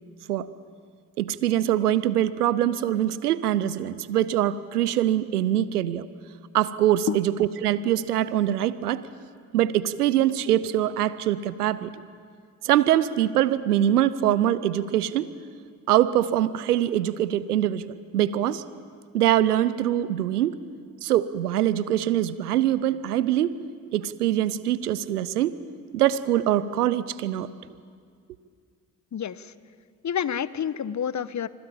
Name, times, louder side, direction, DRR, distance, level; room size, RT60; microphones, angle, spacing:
voice 1, 1.2-6.1 6.5-9.1 9.5-11.9 12.6-15.2 15.9-18.6 19.1-20.6 21.0-23.5 23.9-25.6 25.9-27.5, right 12 dB, 90° right, 17 dB, 0.7 m, -23 dB
voice 2, 29.1-29.5 30.0-31.5, left 8 dB, 40° left, 16 dB, 1.1 m, -28 dB
25.5 x 18.5 x 8.7 m, 2.2 s
hypercardioid pair, 45°, 45 cm